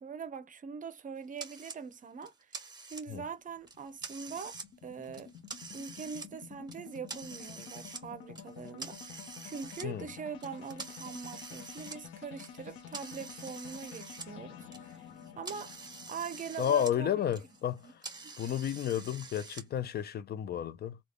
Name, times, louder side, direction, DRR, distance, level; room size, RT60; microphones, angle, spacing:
voice 1, 0.0-2.6 2.9-4.6 4.8-5.3 5.7-15.1 15.4-15.7 16.1-17.1 17.8-17.9 18.2-18.3, right 6 dB, 40° right, 0.7 m, -43 dB
sound 1, 1.4-1.8 2.2-3.3 3.7-4.7 5.0-6.3 6.7-8.0 8.4-9.9 10.4-14.3 14.6-16.9 17.2-19.6, right 4 dB, 20° right, 1.2 m, -46 dB
sound 2, 2.9-19.3, left 8 dB, 90° left, 0.8 m, -51 dB
voice 2, 16.6-18.0 18.4-21.0, left 10 dB, 55° left, 0.5 m, -32 dB
3.3 x 2.3 x 3.6 m
cardioid pair, 90°, 20 cm